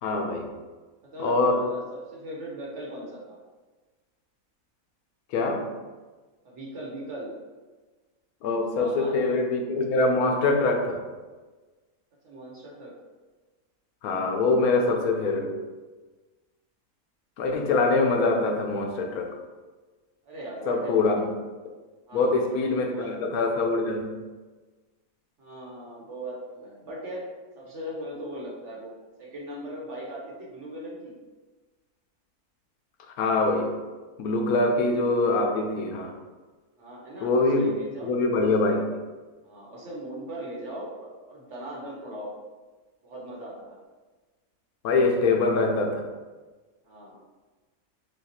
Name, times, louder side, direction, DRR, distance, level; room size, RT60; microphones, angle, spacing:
voice 1, 0.0-0.5 1.2-1.6 5.3-5.7 8.4-11.0 14.0-15.5 17.4-19.3 20.7-21.2 22.1-24.2 33.2-33.7 34.2-36.1 37.2-37.8 38.0-38.9 44.8-46.1, left 3 dB, 80° left, 3 dB, 1.1 m, -24 dB
voice 2, 1.1-3.4 6.4-7.3 8.7-9.2 12.2-12.9 14.5-15.2 20.2-21.2 22.1-22.4 22.7-23.1 25.4-27.3 27.5-28.9 29.2-31.2 36.8-38.1 38.6-38.7 39.4-42.3 43.0-43.8 46.8-47.2, right 1 dB, 55° right, -4 dB, 1.2 m, -39 dB
6.5 x 2.3 x 2.8 m, 1.3 s
omnidirectional pair, 1.6 m